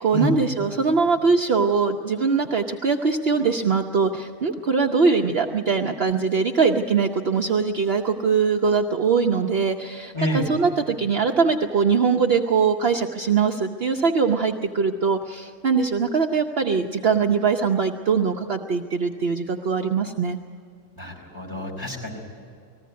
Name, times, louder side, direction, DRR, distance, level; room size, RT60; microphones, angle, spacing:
voice 1, 0.0-20.4, right 5 dB, 55° right, 3 dB, 0.9 m, -22 dB
voice 2, 21.0-22.2, equal, 15° left, -2 dB, 4.9 m, -28 dB
20.0 x 15.5 x 9.4 m, 2.3 s
omnidirectional pair, 1.4 m